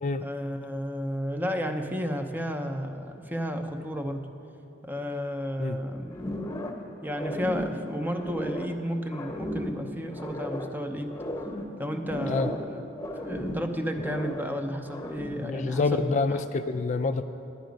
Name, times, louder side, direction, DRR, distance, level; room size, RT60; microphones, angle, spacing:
voice 1, 0.2-4.3 4.8-6.1 7.0-11.2 11.8-12.8 13.1-16.4, equal, 10° right, 6 dB, 0.6 m, -32 dB
sound 1, 6.1-6.9 7.1-8.8 9.1-10.8 11.1-12.7 13.0-14.5 14.9-15.5, left 1 dB, 15° left, 1.0 m, -35 dB
voice 2, 15.4-17.2, left 3 dB, 40° left, 9 dB, 0.3 m, -27 dB
10.5 x 10.5 x 5.1 m, 2.7 s
head